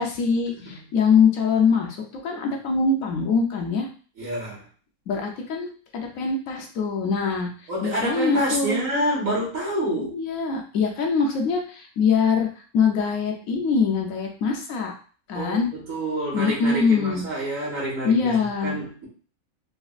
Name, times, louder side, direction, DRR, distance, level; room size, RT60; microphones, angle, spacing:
voice 1, 0.0-2.0 2.2-3.9 5.1-7.5 7.8-8.8 10.0-12.5 12.7-14.9 15.3-15.7 16.3-17.2 18.0-18.8, left 5 dB, 70° left, 1 dB, 1.1 m, -23 dB
voice 2, 4.2-4.7 7.7-10.2 15.3-19.1, equal, 65° right, -6 dB, 1.8 m, -28 dB
4.0 x 2.4 x 2.4 m, 0.40 s
omnidirectional pair, 1.5 m